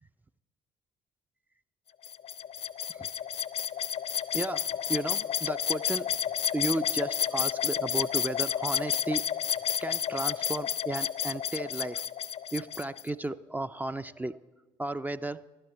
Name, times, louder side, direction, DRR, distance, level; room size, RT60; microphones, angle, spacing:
sound 1, 2.0-13.1, left 8 dB, 45° left, 0.5 m, -31 dB
voice 1, 4.3-6.1 6.5-9.2 9.5-12.0 12.5-14.4 14.8-15.4, right 2 dB, 10° right, 11 dB, 0.3 m, -34 dB
11.5 x 10.5 x 4.5 m, 1.2 s
figure-of-eight pair, 45°, 14 cm